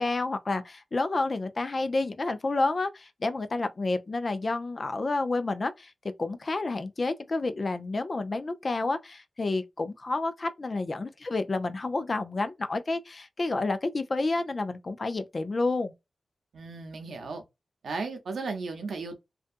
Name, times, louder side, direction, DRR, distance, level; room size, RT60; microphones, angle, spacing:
voice 1, 0.0-5.9 6.2-15.9, left 3 dB, 50° left, 0.5 m, -29 dB
voice 2, 16.5-17.4 17.8-19.2, right 4 dB, 85° right, 0.7 m, -35 dB
2.5 x 2.3 x 2.5 m
cardioid pair, 55°, 0 cm